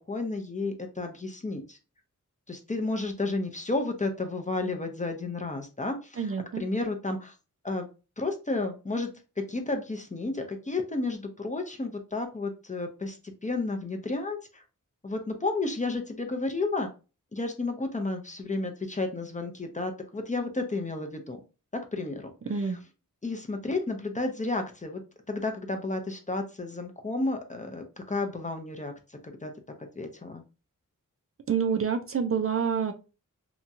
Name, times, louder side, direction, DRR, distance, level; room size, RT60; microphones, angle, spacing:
voice 1, 0.1-1.8 2.5-7.4 7.6-7.9 8.2-9.1 9.4-14.6 15.0-16.9 17.3-21.4 21.7-22.8 23.2-25.0 25.3-29.5 30.0-30.4, left 2 dB, 25° left, 4 dB, 0.5 m, -32 dB
voice 2, 6.2-6.6 22.5-22.8 31.5-32.9, right 6 dB, 45° right, 6 dB, 0.4 m, -27 dB
2.9 x 2.3 x 2.6 m, 0.31 s
wide cardioid pair, 75°, 33 cm